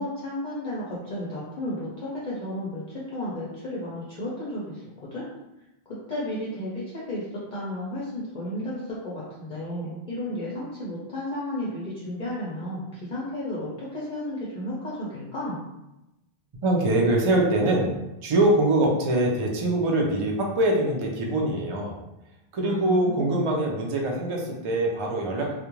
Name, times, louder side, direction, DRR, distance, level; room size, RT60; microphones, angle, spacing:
voice 1, 0.0-5.2 5.9-7.3 7.5-15.6 22.6-23.4, left 1 dB, 55° left, -7 dB, 0.7 m, -33 dB
voice 2, 16.6-17.9 18.2-22.0 22.5-25.5, right 1 dB, 45° right, -1 dB, 0.4 m, -23 dB
2.3 x 2.1 x 3.0 m, 0.94 s
omnidirectional pair, 1.1 m